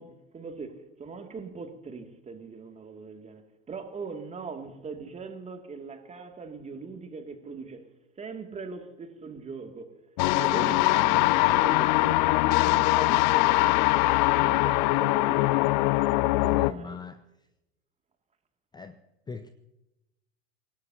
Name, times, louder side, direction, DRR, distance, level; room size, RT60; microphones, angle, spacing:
voice 1, 0.0-7.8 8.2-9.9 10.3-13.9 14.4-15.5 16.4-17.0, right 5 dB, 20° right, 2.5 m, -40 dB
sound 1, 10.2-16.7, left 20 dB, 45° left, 0.5 m, -22 dB
voice 2, 16.6-17.2 18.7-18.9 19.3-19.5, left 5 dB, 10° left, 0.8 m, -40 dB
26.5 x 18.0 x 2.9 m
figure-of-eight pair, 85°, 33 cm